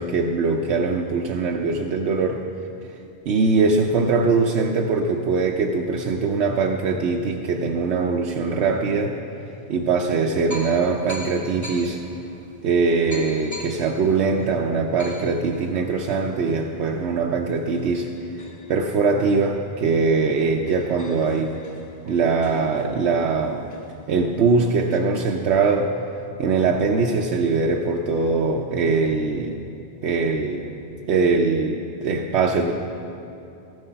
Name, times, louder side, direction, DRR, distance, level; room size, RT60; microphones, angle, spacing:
voice 1, 0.0-2.5 3.3-9.2 9.7-12.0 12.6-21.6 22.0-23.7 24.1-26.0 26.4-29.6 30.0-30.7 31.1-32.7, right 4 dB, 85° right, 1 dB, 0.9 m, -22 dB
sound 1, 9.7-9.8 10.5-19.7 20.0-20.1 20.3-25.0, equal, 20° left, 0.8 m, -43 dB
14.0 x 7.8 x 5.7 m, 2.9 s
omnidirectional pair, 1.1 m